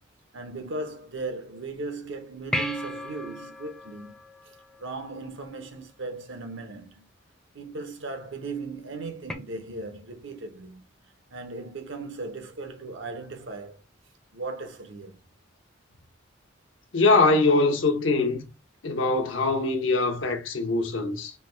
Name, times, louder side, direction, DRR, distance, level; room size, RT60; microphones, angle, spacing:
voice 1, 0.3-4.2 4.5-7.1 7.5-10.9 11.3-13.8 14.3-15.2, right 3 dB, 70° right, 0.9 m, -37 dB
sound 1, 2.5-5.2 9.3-9.4, left 1 dB, 5° left, 0.5 m, -34 dB
voice 2, 16.9-18.4 18.8-21.3, left 3 dB, 75° left, 0.8 m, -22 dB
3.4 x 2.2 x 4.3 m
head